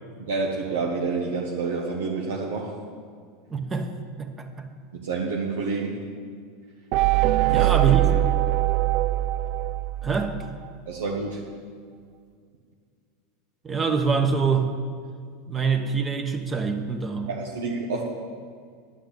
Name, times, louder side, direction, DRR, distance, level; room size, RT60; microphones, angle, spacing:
voice 1, 0.2-2.8 4.9-6.0 7.5-8.0 10.9-11.4 17.3-18.0, right 4 dB, 80° right, -2 dB, 1.3 m, -28 dB
voice 2, 3.5-3.9 4.2-4.7 7.4-8.1 10.0-10.3 13.6-14.7 15.5-17.3, right 5 dB, 25° right, 5 dB, 1.2 m, -25 dB
sound 1, 6.9-10.7, right 16 dB, 60° right, 0.4 m, -22 dB
10.5 x 5.8 x 8.6 m, 2.1 s
hypercardioid pair, 100°, 0 cm